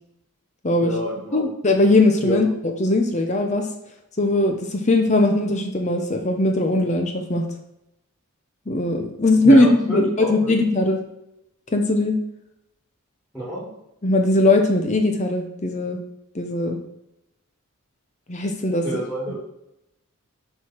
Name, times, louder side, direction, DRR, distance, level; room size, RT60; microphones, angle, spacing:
voice 1, 0.8-1.5 2.2-2.4 9.4-10.5 13.3-13.7 18.8-19.4, equal, 5° left, -9 dB, 2.9 m, -29 dB
voice 2, 1.3-2.5 2.8-3.7 4.2-7.4 8.7-11.0 11.7-12.2 14.0-16.0 16.3-16.8 18.3-18.8, left 2 dB, 30° left, 4 dB, 0.8 m, -19 dB
7.7 x 4.8 x 4.5 m, 0.85 s
head